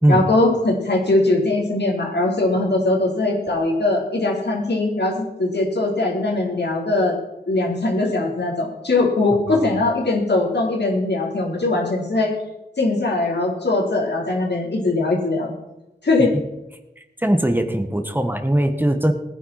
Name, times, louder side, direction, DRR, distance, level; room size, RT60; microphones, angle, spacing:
voice 1, 0.1-7.2 7.5-12.3 12.8-15.5 16.0-16.3, left 2 dB, 75° left, -2 dB, 4.0 m, -21 dB
voice 2, 17.0-19.1, right 1 dB, 10° right, 6 dB, 1.6 m, -20 dB
19.0 x 10.0 x 4.3 m, 0.94 s
wide cardioid pair, 45°, 17 cm